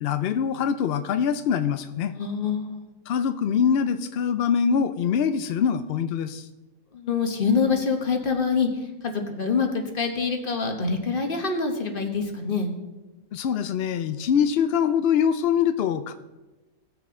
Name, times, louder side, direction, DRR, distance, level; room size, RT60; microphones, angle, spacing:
voice 1, 0.0-2.1 3.1-6.4 13.3-16.1, left 7 dB, 80° left, 10 dB, 0.5 m, -24 dB
voice 2, 2.0-2.8 6.9-8.7 9.0-9.7 9.9-12.7, left 5 dB, 40° left, 4 dB, 1.2 m, -25 dB
17.5 x 6.8 x 3.7 m, 1.1 s
omnidirectional pair, 1.6 m